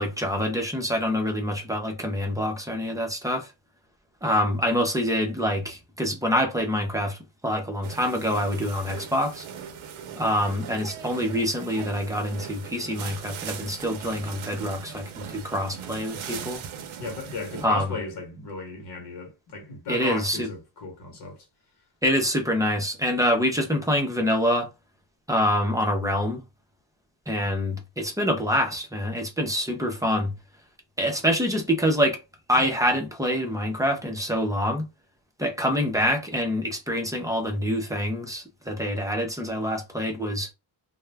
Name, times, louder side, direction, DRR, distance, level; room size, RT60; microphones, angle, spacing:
voice 1, 0.0-3.5 4.2-7.2 7.4-9.5 10.2-16.6 17.6-17.9 19.9-20.5 22.0-24.7 25.3-26.4 27.3-30.3 31.0-32.2 32.5-34.9 35.4-40.5, equal, 5° right, 0.5 m, -26 dB
sound 1, 7.8-17.7, right 8 dB, 75° right, 0.6 m, -39 dB
voice 2, 17.0-21.4, left 3 dB, 55° left, 1.1 m, -35 dB
2.2 x 2.0 x 3.2 m
wide cardioid pair, 135°, 49 cm